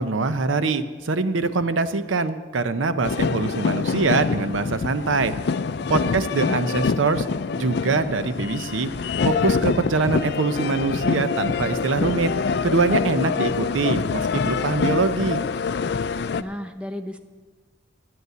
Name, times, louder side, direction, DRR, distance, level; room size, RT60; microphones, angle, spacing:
voice 1, 0.0-5.3 5.9-7.2 7.6-8.9 9.2-12.3 12.6-15.4, right 3 dB, 85° right, 11 dB, 0.7 m, -23 dB
sound 1, 3.0-16.4, left 5 dB, 55° left, 0.4 m, -25 dB
voice 2, 6.0-6.6 16.4-17.2, equal, 5° right, 7 dB, 0.6 m, -33 dB
9.5 x 8.2 x 9.1 m, 1.5 s
head